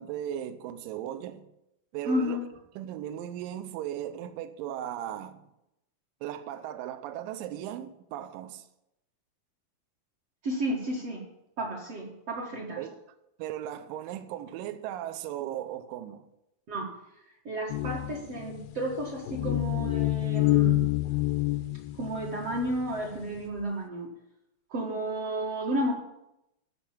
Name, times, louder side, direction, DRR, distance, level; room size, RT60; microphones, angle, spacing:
voice 1, 0.0-1.5 1.9-2.4 2.8-5.4 6.2-8.7 12.8-12.9 13.4-16.2, right 11 dB, 75° right, 2.3 m, -37 dB
voice 2, 2.0-2.5 10.4-11.2 11.6-12.8 16.7-16.9 17.4-20.9 21.9-24.1 24.7-25.9, right 1 dB, 50° right, 2.3 m, -32 dB
sound 1, 17.7-22.9, left 18 dB, 80° left, 2.2 m, -27 dB
13.0 x 5.9 x 7.3 m
omnidirectional pair, 4.4 m